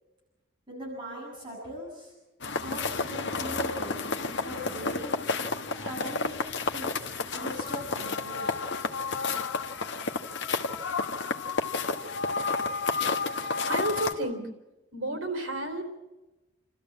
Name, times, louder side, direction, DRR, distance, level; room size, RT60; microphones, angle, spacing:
voice 1, 0.7-2.1 2.6-4.1 4.4-5.4 5.7-8.5, equal, 25° right, -4 dB, 7.7 m, -40 dB
sound 1, 2.4-14.1, left 4 dB, 60° left, 1.4 m, -31 dB
voice 2, 13.3-14.5 14.9-15.8, right 1 dB, 80° right, 5 dB, 3.7 m, -32 dB
28.5 x 14.0 x 8.5 m, 1.1 s
head